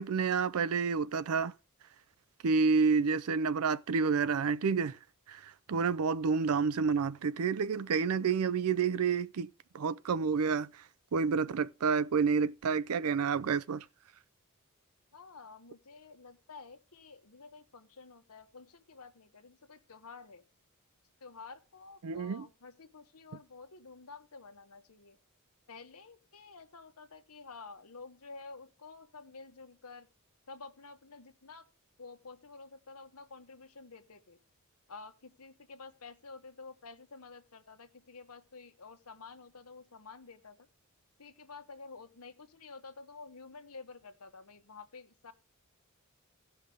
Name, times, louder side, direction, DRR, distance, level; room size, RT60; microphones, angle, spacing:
voice 1, 0.0-1.5 2.4-5.0 5.3-10.8 11.1-13.8 22.0-22.5, right 5 dB, 85° right, 0.5 m, -29 dB
voice 2, 15.1-20.4 21.2-25.2 25.7-30.1 30.5-31.7 32.0-34.4 34.9-40.7 41.2-45.3, left 4 dB, 90° left, 1.2 m, -50 dB
17.0 x 5.7 x 3.4 m
head